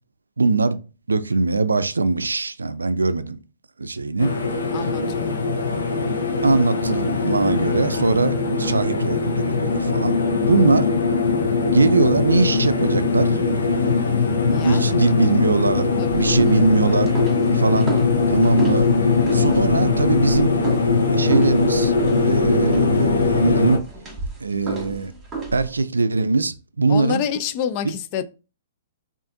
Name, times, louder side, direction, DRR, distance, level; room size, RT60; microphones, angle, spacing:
voice 1, 0.4-0.8 1.1-3.4 3.8-4.4 6.4-10.2 10.5-10.9 11.7-13.4 14.6-17.2 17.5-17.9 18.3-18.9 19.3-20.6 21.1-23.8 24.4-25.1 25.5-27.2 27.8-28.0, right 3 dB, 80° right, 0.4 m, -21 dB
sound 1, 4.2-23.8, left 4 dB, 70° left, 0.8 m, -21 dB
voice 2, 4.7-5.5 14.5-15.1 16.0-16.3 26.9-28.2, left 8 dB, 40° left, 0.4 m, -28 dB
sound 2, 16.1-25.8, right 3 dB, 15° right, 2.2 m, -33 dB
5.5 x 2.5 x 2.5 m
figure-of-eight pair, 115°, 0 cm